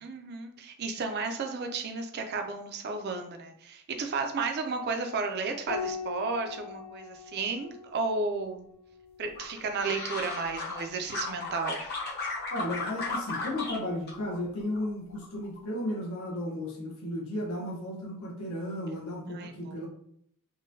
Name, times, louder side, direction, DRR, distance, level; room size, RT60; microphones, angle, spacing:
voice 1, 0.0-8.7 9.2-11.9 19.3-19.8, right 4 dB, 50° right, 5 dB, 0.4 m, -33 dB
Piano, 5.7-10.5 12.2-13.0, left 6 dB, 85° right, 1.5 m, -42 dB
sound 1, 9.4-10.8 11.1-13.8 14.1-14.8 15.2-15.6, left 3 dB, 50° left, 0.8 m, -35 dB
voice 2, 12.5-19.9, left 1 dB, 80° left, -3 dB, 0.8 m, -34 dB
3.6 x 2.2 x 2.6 m, 0.68 s
head